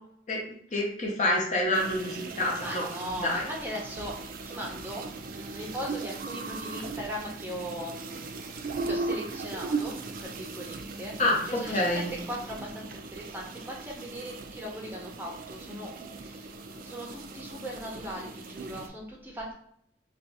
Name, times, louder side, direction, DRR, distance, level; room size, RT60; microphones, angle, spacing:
voice 1, 0.7-2.9 3.2-3.4 11.2-12.1, left 1 dB, 40° left, -1 dB, 0.6 m, -27 dB
sound 1, 1.7-18.9, right 3 dB, 50° right, 0.3 m, -38 dB
voice 2, 2.6-4.2 4.5-11.1 11.4-19.5, equal, 10° right, -2 dB, 0.6 m, -39 dB
2.6 x 2.3 x 3.9 m, 0.68 s
head